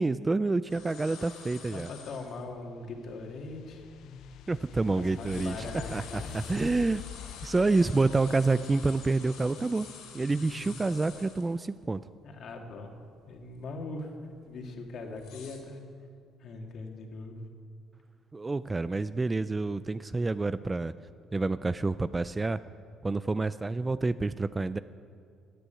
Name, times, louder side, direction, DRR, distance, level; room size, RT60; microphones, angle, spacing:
voice 1, 0.0-1.9 4.5-7.0 7.4-9.9 10.1-12.0 18.3-20.9 21.3-22.6 23.0-24.8, right 3 dB, 15° right, 14 dB, 0.3 m, -28 dB
sound 1, 0.7-2.4 3.0-3.1 3.7-4.7 5.0-11.7 12.1-12.2 12.6-12.9 13.3-13.6 14.3-15.6, left 7 dB, 85° left, 3.4 m, -48 dB
voice 2, 1.7-4.2 4.9-6.4 10.5-10.8 12.2-12.9 13.3-14.1 14.5-15.8 16.4-17.4, left 3 dB, 55° left, 2 dB, 2.2 m, -41 dB
sound 2, 2.5-9.7, left 10 dB, 70° left, 0.4 m, -46 dB
14.0 x 9.9 x 9.0 m, 2.3 s
cardioid pair, 120°, 0 cm